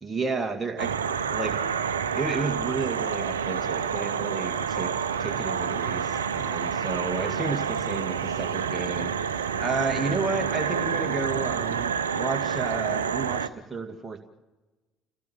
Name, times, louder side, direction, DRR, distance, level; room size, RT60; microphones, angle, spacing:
voice 1, 0.0-1.6 2.1-14.2, right 4 dB, 20° right, 4 dB, 2.1 m, -32 dB
sound 1, 0.8-13.5, right 7 dB, 80° right, 0.7 m, -28 dB
28.5 x 18.0 x 7.2 m, 1.2 s
figure-of-eight pair, 55°, 0 cm